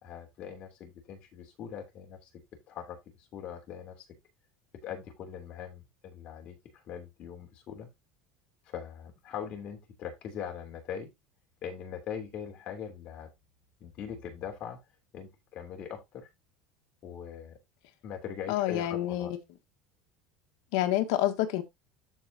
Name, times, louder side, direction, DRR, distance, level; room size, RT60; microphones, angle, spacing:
voice 1, 0.0-2.3 2.7-4.1 4.8-6.6 6.8-7.9 8.7-11.1 11.6-13.3 13.8-14.8 15.1-16.3 17.0-17.6 18.0-19.3, left 8 dB, 45° left, 3.0 m, -41 dB
voice 2, 18.5-19.4 20.7-21.6, left 13 dB, 75° left, 1.4 m, -28 dB
13.5 x 4.6 x 2.8 m
cardioid pair, 145°, 3 cm